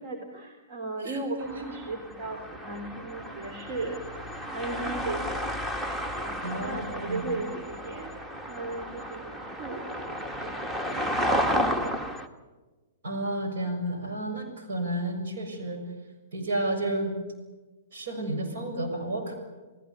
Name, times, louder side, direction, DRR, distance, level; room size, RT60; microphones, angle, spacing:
voice 1, 0.0-5.5 6.2-8.2 8.5-12.2, right 2 dB, 40° right, 4 dB, 3.1 m, -37 dB
voice 2, 1.0-1.7 6.4-7.3 13.0-15.8 16.3-17.1 17.9-19.4, right 1 dB, 60° right, 5 dB, 6.7 m, -31 dB
sound 1, 1.4-12.3, equal, 10° right, 1.7 m, -32 dB
29.0 x 18.5 x 8.3 m, 1.3 s
figure-of-eight pair, 110°, 0 cm